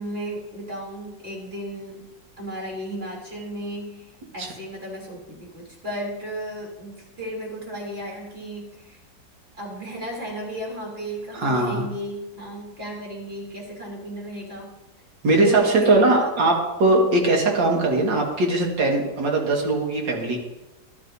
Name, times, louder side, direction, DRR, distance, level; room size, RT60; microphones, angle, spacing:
voice 1, 0.0-9.0 9.5-14.7 15.3-16.3, right 1 dB, 30° right, -3 dB, 3.5 m, -34 dB
voice 2, 11.3-11.8 15.2-20.4, right 2 dB, 80° right, 0 dB, 2.5 m, -20 dB
14.0 x 12.0 x 2.7 m, 1.0 s
omnidirectional pair, 2.0 m